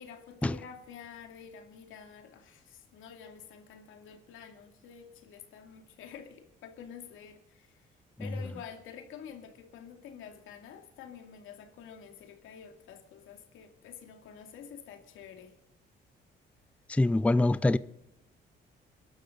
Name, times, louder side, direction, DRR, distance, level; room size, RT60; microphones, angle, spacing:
voice 1, 0.0-7.9 8.2-15.5, left 7 dB, 90° left, 2.5 m, -48 dB
voice 2, 16.9-17.8, left 2 dB, 5° left, 0.4 m, -24 dB
23.0 x 12.0 x 3.9 m
cardioid pair, 90°, 20 cm